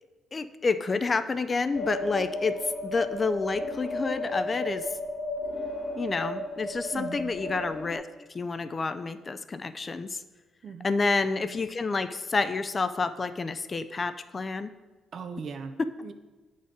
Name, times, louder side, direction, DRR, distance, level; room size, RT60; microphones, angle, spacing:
voice 1, 0.3-2.6 2.8-4.9 6.0-8.1 8.3-10.2 10.8-14.7, left 4 dB, 30° left, 11 dB, 0.4 m, -29 dB
sound 1, 1.7-8.0, left 1 dB, 70° left, 1.5 m, -34 dB
voice 2, 6.9-7.4 10.6-11.0 15.1-16.1, right 5 dB, 55° right, 9 dB, 0.6 m, -39 dB
8.0 x 3.9 x 5.1 m, 1.3 s
cardioid pair, 90°, 0 cm